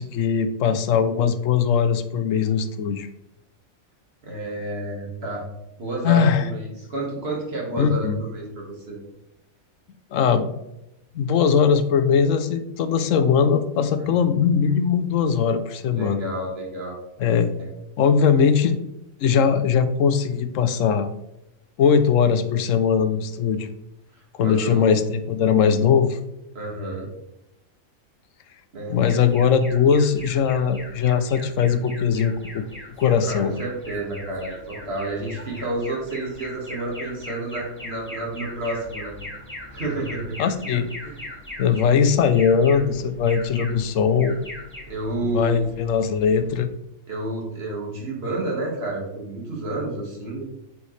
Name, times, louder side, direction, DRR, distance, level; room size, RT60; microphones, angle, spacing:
voice 1, 0.0-3.1 6.0-6.4 7.8-8.2 10.1-10.5 11.1-16.3 17.2-17.5 18.0-18.8 19.2-21.1 21.8-23.7 24.4-26.2 28.9-32.6 33.0-33.5 40.4-40.9 41.6-44.4 45.3-46.7, left 6 dB, 70° left, 10 dB, 1.0 m, -20 dB
voice 2, 4.2-5.4 5.8-9.0 14.0-14.1 15.9-17.0 17.6-17.7 24.1-25.0 26.5-27.1 28.7-29.0 33.2-39.2 39.7-40.4 41.0-41.2 44.9-45.7 47.1-50.4, right 2 dB, 45° right, -2 dB, 2.1 m, -30 dB
Alarm, 29.0-46.6, left 1 dB, 10° left, 2.0 m, -40 dB
8.0 x 4.9 x 3.2 m, 0.89 s
omnidirectional pair, 1.4 m